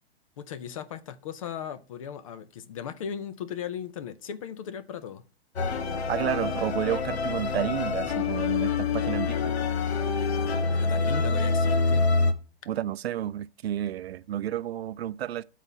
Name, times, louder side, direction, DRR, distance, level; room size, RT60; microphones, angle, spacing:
voice 1, 0.4-5.2 10.7-12.1, left 8 dB, 35° left, 0.5 m, -37 dB
sound 1, 5.6-12.3, left 4 dB, 85° left, 1.3 m, -26 dB
voice 2, 6.1-9.5 12.7-15.4, right 11 dB, 75° right, 0.5 m, -31 dB
9.0 x 4.1 x 5.6 m
hypercardioid pair, 160°, 31 cm